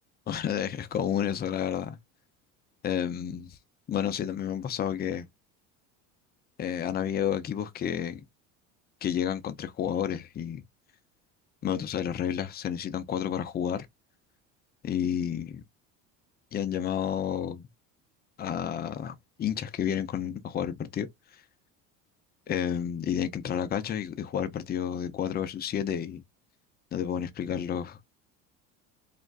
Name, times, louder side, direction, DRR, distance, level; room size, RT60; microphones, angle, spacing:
voice 1, 0.3-2.0 2.8-3.6 3.9-5.3 6.6-8.2 9.0-10.6 11.6-13.8 14.8-15.6 16.5-17.7 18.4-21.1 22.5-26.2 26.9-28.0, left 9 dB, 25° left, 0.4 m, -30 dB
2.5 x 2.2 x 2.3 m
supercardioid pair, 85°, 39 cm